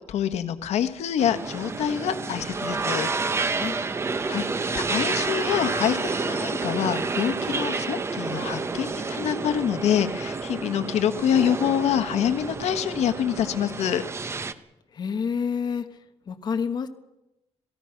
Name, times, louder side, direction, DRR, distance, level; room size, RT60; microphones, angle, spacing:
voice 1, 0.1-3.1 4.3-4.4 4.7-14.0, left 9 dB, 85° left, 9 dB, 1.4 m, -26 dB
sound 1, 1.2-14.5, right 4 dB, 25° right, 0.9 m, -29 dB
voice 2, 14.9-16.0 16.3-16.9, left 6 dB, 40° left, 7 dB, 1.2 m, -28 dB
27.5 x 17.5 x 5.9 m, 0.95 s
cardioid pair, 155°, 11 cm